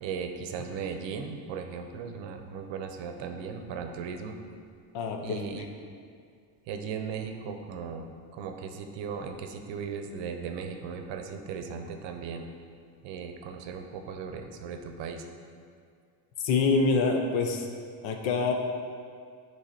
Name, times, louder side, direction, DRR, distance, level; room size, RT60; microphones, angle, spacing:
voice 1, 0.0-4.4 5.2-5.7 6.7-12.5 13.0-15.2, right 6 dB, 65° right, 6 dB, 0.7 m, -37 dB
voice 2, 4.9-5.4 16.4-17.7 18.0-18.5, left 4 dB, 70° left, 3 dB, 0.9 m, -25 dB
8.2 x 3.3 x 4.2 m, 2.2 s
cardioid pair, 125°, 47 cm